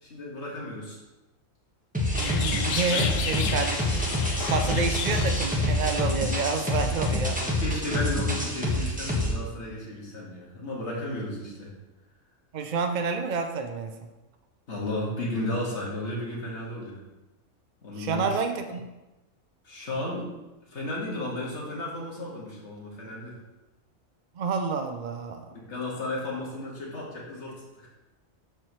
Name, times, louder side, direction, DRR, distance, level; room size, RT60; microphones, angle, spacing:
voice 1, 0.0-1.0 2.9-3.1 4.7-4.9 7.4-11.7 14.7-17.0 17.8-18.3 19.6-20.3 20.7-23.3 25.5-27.9, left 1 dB, 55° left, -3 dB, 2.1 m, -34 dB
sound 1, 1.9-9.3, left 1 dB, 5° right, 1.2 m, -27 dB
sound 2, 2.2-7.1, left 6 dB, 70° left, 1.0 m, -34 dB
voice 2, 2.2-4.0 4.5-7.4 12.5-13.9 18.0-18.8 24.4-25.4, right 5 dB, 70° right, 6 dB, 0.4 m, -29 dB
13.0 x 4.5 x 3.1 m, 1.0 s
omnidirectional pair, 1.5 m